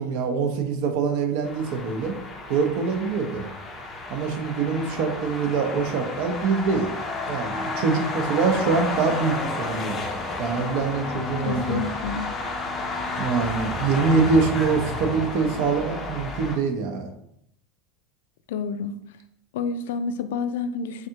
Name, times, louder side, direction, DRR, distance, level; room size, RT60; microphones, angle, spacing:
voice 1, 0.0-2.2 2.5-3.4 4.1-6.9 7.3-10.0 10.4-11.8 13.2-17.1, right 5 dB, 55° right, 5 dB, 0.6 m, -24 dB
sound 1, 1.4-16.6, left 2 dB, 20° left, 0.5 m, -31 dB
voice 2, 11.4-12.3 18.5-19.0 19.5-21.1, left 5 dB, 85° left, 10 dB, 0.3 m, -29 dB
3.6 x 3.3 x 2.8 m, 0.75 s
supercardioid pair, 170°, 0 cm